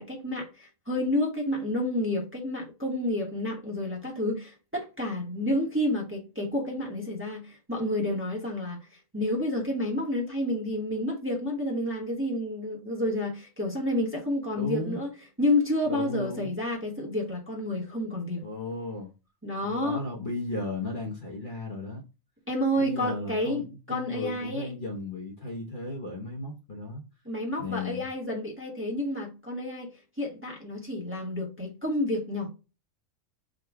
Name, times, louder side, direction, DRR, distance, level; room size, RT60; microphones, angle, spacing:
voice 1, 0.0-15.1 15.4-18.5 19.4-20.0 22.5-24.7 27.2-29.9 30.2-32.5, left 1 dB, 10° right, 0.9 m, -30 dB
voice 2, 14.6-15.0 15.9-16.5 18.4-19.1 19.6-22.0 22.8-27.0 27.6-28.0, left 2 dB, 45° left, 0.9 m, -35 dB
3.8 x 2.2 x 4.5 m
omnidirectional pair, 1.4 m